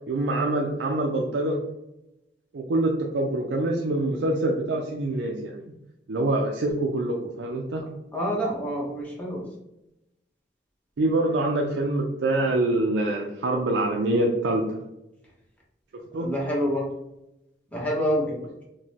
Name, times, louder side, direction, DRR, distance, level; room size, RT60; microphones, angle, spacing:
voice 1, 0.1-1.6 2.5-5.6 6.1-7.9 11.0-14.8 16.1-16.3, right 2 dB, 80° right, 0 dB, 0.4 m, -25 dB
voice 2, 8.1-9.4 16.2-16.8 17.7-18.4, equal, 10° left, -4 dB, 0.9 m, -27 dB
4.6 x 2.2 x 2.8 m, 0.89 s
head